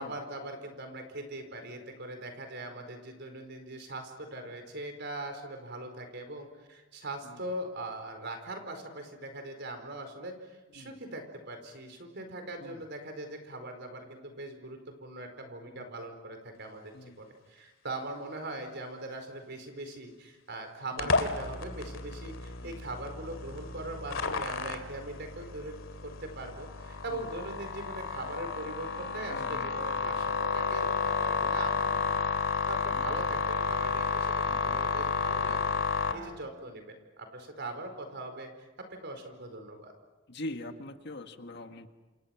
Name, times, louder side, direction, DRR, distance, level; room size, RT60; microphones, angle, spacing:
voice 1, 0.0-38.5 38.9-39.9, right 2 dB, 60° right, 6 dB, 4.7 m, -41 dB
sound 1, 21.0-36.1, left 4 dB, 75° left, 2.5 m, -31 dB
voice 2, 29.3-29.7 32.9-33.2 34.4-34.9 40.3-41.9, left 1 dB, 60° left, 6 dB, 1.7 m, -43 dB
28.0 x 28.0 x 6.0 m, 1.2 s
head